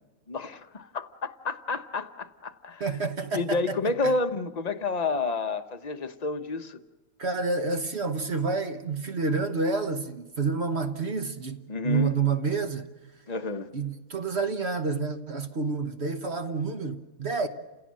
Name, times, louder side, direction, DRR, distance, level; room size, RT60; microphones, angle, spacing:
voice 1, 0.3-2.9 3.3-6.8 11.7-12.2 13.3-13.7, left 3 dB, 30° left, 0.9 m, -30 dB
voice 2, 2.8-3.8 4.0-4.1 7.2-12.9 13.7-17.5, right 4 dB, 45° right, 1.3 m, -29 dB
30.0 x 16.5 x 7.5 m
omnidirectional pair, 1.7 m